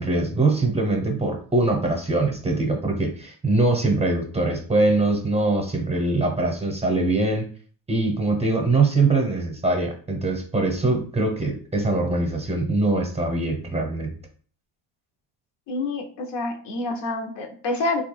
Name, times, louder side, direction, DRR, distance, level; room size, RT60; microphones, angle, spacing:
voice 1, 0.0-7.5 7.9-14.1, right 2 dB, 15° right, 2 dB, 0.8 m, -22 dB
voice 2, 15.7-18.0, left 2 dB, 65° left, 3 dB, 0.9 m, -27 dB
3.3 x 2.4 x 3.2 m, 0.43 s
supercardioid pair, 90°, 46 cm